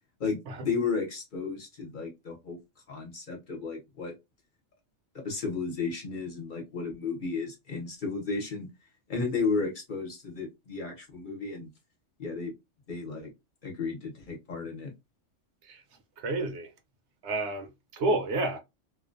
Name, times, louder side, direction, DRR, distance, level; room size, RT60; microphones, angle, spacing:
voice 1, 0.2-2.6 2.9-4.1 5.1-8.7 9.1-11.7 12.2-12.5 12.9-13.3 13.6-14.9, left 4 dB, 45° left, 0.8 m, -33 dB
voice 2, 16.2-16.7 17.2-18.6, right 2 dB, 70° right, 0.8 m, -30 dB
2.4 x 2.1 x 2.5 m
omnidirectional pair, 1.3 m